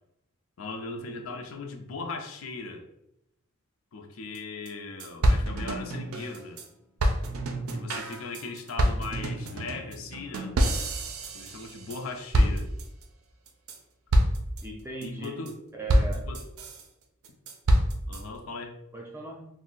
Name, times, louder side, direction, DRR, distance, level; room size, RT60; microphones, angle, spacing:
voice 1, 0.6-2.9 3.9-6.6 7.7-10.6 11.3-12.7 15.0-15.6 16.3-16.5 18.1-18.8, left 3 dB, 75° left, 4 dB, 0.5 m, -38 dB
sound 1, 4.3-4.4 4.7-4.8 5.0-6.7 7.0-12.0 12.3-13.0 13.5-13.8 14.1-14.6 15.0-15.5 15.9-16.8 17.2-18.2, equal, 85° right, 0.4 m, -26 dB
voice 2, 14.6-15.5 15.7-16.3 18.9-19.5, right 3 dB, 10° right, -1 dB, 0.4 m, -38 dB
2.5 x 2.0 x 3.8 m, 0.79 s
head